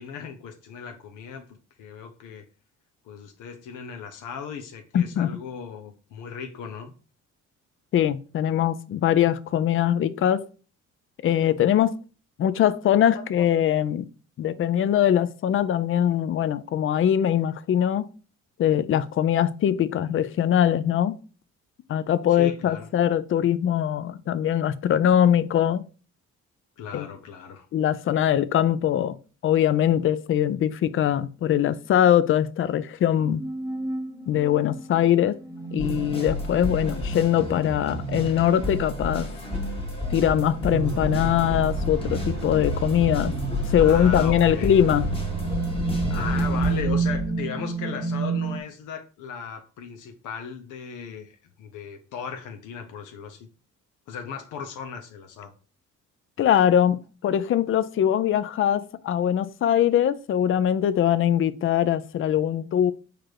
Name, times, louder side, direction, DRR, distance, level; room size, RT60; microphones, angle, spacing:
voice 1, 0.0-2.4 3.0-6.9 13.1-13.2 22.3-22.9 26.8-27.7 32.6-32.7 43.8-44.7 46.1-53.5 54.1-55.5, left 7 dB, 85° left, 0.7 m, -37 dB
voice 2, 4.9-5.4 7.9-10.4 11.2-11.9 12.4-14.0 14.4-18.1 18.6-21.2 21.9-25.8 26.9-27.1 27.7-29.2 29.4-33.4 34.3-35.4 35.7-39.3 40.1-43.3 43.7-45.1 56.4-62.9, left 10 dB, 45° left, 0.4 m, -22 dB
sound 1, 33.2-37.1 39.5-39.6 40.3-40.4 41.2-42.2 43.1-43.5 44.2-48.6, right 4 dB, 10° right, 0.8 m, -30 dB
sound 2, 35.8-46.9, left 1 dB, 20° left, 1.3 m, -30 dB
Accelerating revving vroom, 40.7-47.3, right 3 dB, 65° right, 0.9 m, -33 dB
4.6 x 2.5 x 4.5 m
cardioid pair, 90°, 30 cm